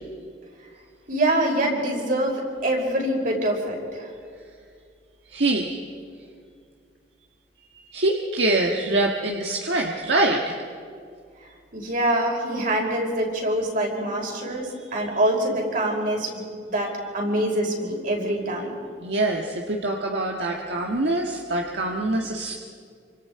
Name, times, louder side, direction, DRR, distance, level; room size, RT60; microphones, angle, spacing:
voice 1, 1.1-4.1 11.7-18.7, right 1 dB, 55° right, -1 dB, 5.5 m, -25 dB
voice 2, 5.3-5.8 7.9-10.6 19.0-22.5, right 2 dB, 75° right, 0 dB, 1.6 m, -24 dB
28.0 x 26.0 x 4.7 m, 2.2 s
head